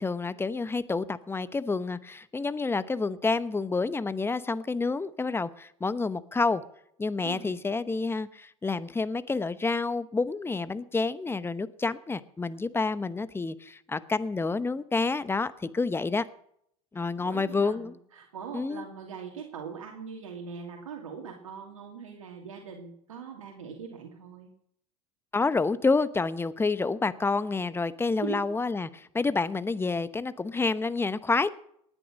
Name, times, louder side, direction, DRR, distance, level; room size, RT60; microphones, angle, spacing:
voice 1, 0.0-6.6 7.0-16.2 16.9-17.9 18.5-18.8 25.3-31.5, left 3 dB, 15° left, 15 dB, 1.0 m, -28 dB
voice 2, 7.2-7.6 16.9-24.5 28.2-28.4, right 6 dB, 85° right, 1 dB, 2.5 m, -41 dB
19.0 x 10.0 x 6.4 m, 0.70 s
hypercardioid pair, 85°, 17 cm